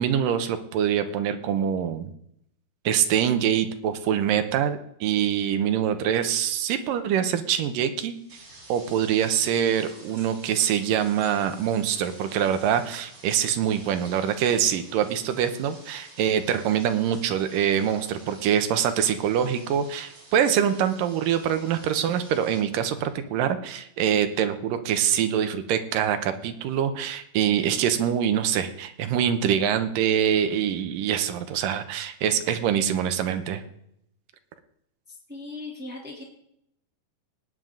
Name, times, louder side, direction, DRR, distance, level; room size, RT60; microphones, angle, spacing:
voice 1, 0.0-2.1 2.9-8.1 8.7-33.6, right 9 dB, 85° right, 9 dB, 2.6 m, -24 dB
sound 1, 8.1-22.6, right 2 dB, 25° right, 3.3 m, -49 dB
voice 2, 35.1-36.2, left 2 dB, 5° right, -2 dB, 2.4 m, -38 dB
18.5 x 9.4 x 3.9 m, 0.74 s
omnidirectional pair, 3.9 m